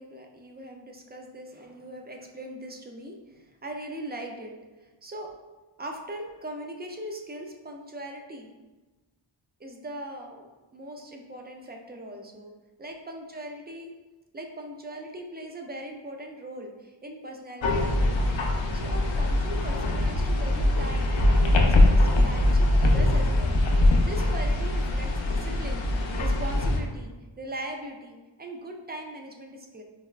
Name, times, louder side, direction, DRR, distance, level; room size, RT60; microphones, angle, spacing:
voice 1, 0.0-5.4 5.8-8.5 9.6-12.5 12.8-13.9 14.3-18.4 18.7-21.1 21.4-25.8 26.2-27.1 27.4-29.8, right 1 dB, 25° right, 2 dB, 0.3 m, -40 dB
sound 1, 17.6-26.8, left 1 dB, 65° left, 0.5 m, -22 dB
4.6 x 2.2 x 2.3 m, 1.2 s
wide cardioid pair, 95°, 48 cm